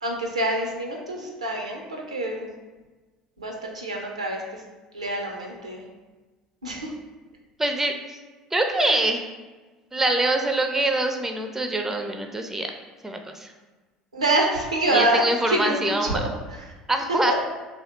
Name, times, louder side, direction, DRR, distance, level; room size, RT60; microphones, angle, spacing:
voice 1, 0.0-2.5 3.4-4.6 4.9-5.8 6.6-6.9 8.8-9.0 14.1-16.7 17.1-17.3, right 1 dB, 80° right, 1 dB, 0.5 m, -26 dB
voice 2, 7.6-8.2 8.5-9.2 9.9-12.7 13.0-13.5 14.9-16.2 16.9-17.3, right 2 dB, 10° right, 5 dB, 0.4 m, -24 dB
2.9 x 2.8 x 4.2 m, 1.3 s
figure-of-eight pair, 65°, 3 cm